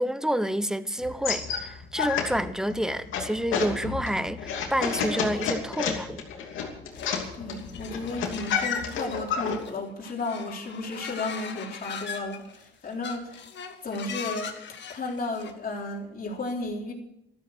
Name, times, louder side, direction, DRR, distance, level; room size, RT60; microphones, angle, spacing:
voice 1, 0.0-6.2, equal, 5° right, 0.9 m, -29 dB
sound 1, 1.0-9.6, left 6 dB, 85° left, 2.7 m, -31 dB
sound 2, 7.0-9.7 10.0-12.6 12.9-15.5, left 7 dB, 65° left, 1.9 m, -39 dB
voice 2, 7.3-13.5 13.8-16.9, left 2 dB, 45° left, 3.9 m, -34 dB
13.5 x 12.5 x 6.4 m
cardioid pair, 90°, 20 cm